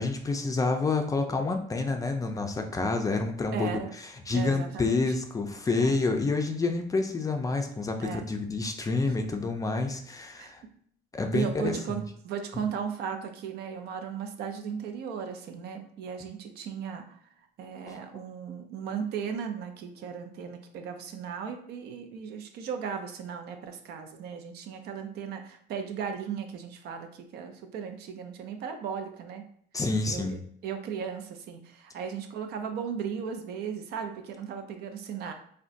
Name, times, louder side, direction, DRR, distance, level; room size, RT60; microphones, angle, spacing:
voice 1, 0.0-3.7 4.0-10.6 11.1-12.0 17.9-18.0 29.7-30.4, left 3 dB, 20° left, 4 dB, 0.4 m, -28 dB
voice 2, 3.5-4.0 4.3-5.1 5.8-5.9 8.0-8.3 10.4-10.5 11.3-17.2 17.6-29.4 30.1-35.3, right 7 dB, 75° right, 6 dB, 0.5 m, -36 dB
3.7 x 2.2 x 2.5 m, 0.63 s
cardioid pair, 110°, 17 cm